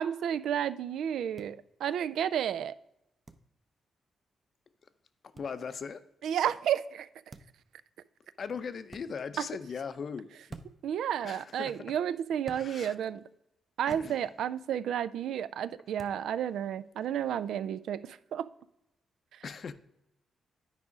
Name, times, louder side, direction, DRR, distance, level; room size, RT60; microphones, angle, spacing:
voice 1, 0.0-2.7 6.2-7.1 10.8-13.2 13.8-18.5, right 9 dB, 80° right, 0.3 m, -31 dB
sound 1, 1.4-1.5 3.3-3.5 5.4-5.5 7.3-7.6 8.9-9.1 10.5-10.9 12.4-12.7 13.9-14.1 16.0-16.2, right 3 dB, 25° right, 0.6 m, -47 dB
voice 2, 5.3-6.0 8.4-10.3 11.2-12.0 12.5-12.9 13.9-14.2 19.4-19.7, left 6 dB, 50° left, 0.5 m, -39 dB
9.7 x 4.8 x 4.9 m
cardioid pair, 95°, 0 cm